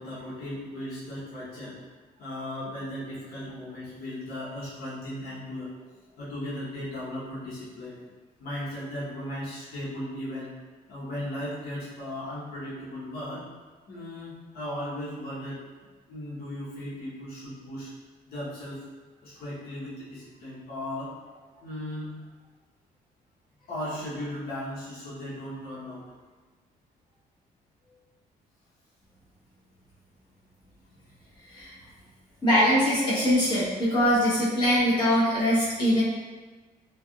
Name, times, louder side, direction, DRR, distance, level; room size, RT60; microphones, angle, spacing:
voice 1, 0.0-1.8 2.2-5.7 6.2-8.0 8.4-10.5 10.9-13.4 13.9-15.6 16.1-17.9 18.3-18.8 19.2-22.1 23.6-26.0 30.9-31.0, left 1 dB, 70° left, -9 dB, 1.0 m, -36 dB
voice 2, 32.4-36.0, equal, 25° left, -10 dB, 1.0 m, -22 dB
3.4 x 2.3 x 2.3 m, 1.3 s
cardioid pair, 165°, 16 cm